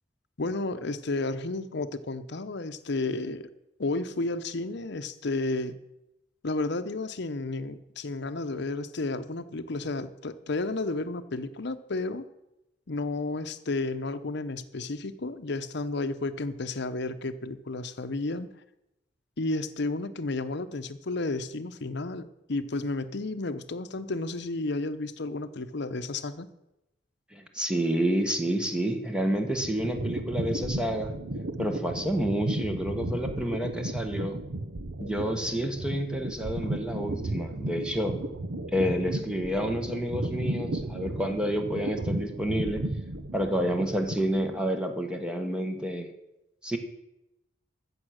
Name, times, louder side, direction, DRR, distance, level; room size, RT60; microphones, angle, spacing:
voice 1, 0.4-3.5 3.8-5.8 6.4-12.3 12.9-18.5 19.4-26.5, left 2 dB, 60° left, 11 dB, 0.8 m, -32 dB
voice 2, 27.3-31.1 31.6-34.4 35.0-38.2 38.7-42.8 43.3-46.1 46.6-46.8, equal, 5° right, 5 dB, 1.1 m, -29 dB
sound 1, 29.2-44.6, right 2 dB, 85° right, 1.0 m, -34 dB
15.0 x 6.9 x 6.4 m, 0.90 s
head